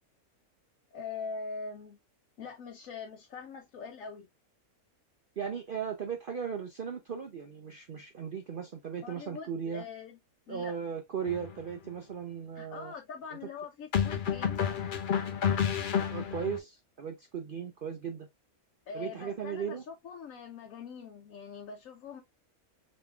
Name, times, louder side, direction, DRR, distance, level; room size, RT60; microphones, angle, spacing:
voice 1, 0.9-2.0 2.4-4.3 9.0-10.2 10.5-10.7 12.5-14.6 18.9-22.2, left 5 dB, 70° left, 1.2 m, -43 dB
voice 2, 5.4-9.8 10.5-12.9 16.1-18.3 18.9-19.8, right 7 dB, 55° right, 0.6 m, -37 dB
sound 1, 11.3-11.5 13.9-16.6, left 8 dB, 45° left, 0.7 m, -30 dB
5.2 x 3.2 x 2.4 m
omnidirectional pair, 1.5 m